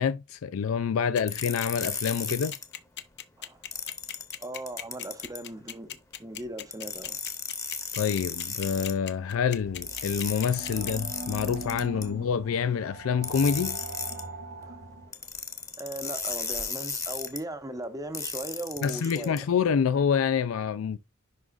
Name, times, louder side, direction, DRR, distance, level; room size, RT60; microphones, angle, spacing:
voice 1, 0.0-2.5 7.9-13.8 18.8-21.0, left 7 dB, 85° left, 0.4 m, -27 dB
sound 1, 1.2-10.9, left 10 dB, 55° left, 0.8 m, -38 dB
sound 2, 1.3-2.6 3.7-5.4 6.7-8.9 9.8-12.0 13.2-14.2 15.1-17.4 18.1-19.4, left 4 dB, 15° left, 1.2 m, -35 dB
voice 2, 4.4-7.2 12.0-12.1 14.6-14.8 15.8-19.5, right 1 dB, 15° right, 0.9 m, -38 dB
sound 3, 9.3-15.1, right 2 dB, 60° right, 1.7 m, -41 dB
11.0 x 3.7 x 2.4 m
head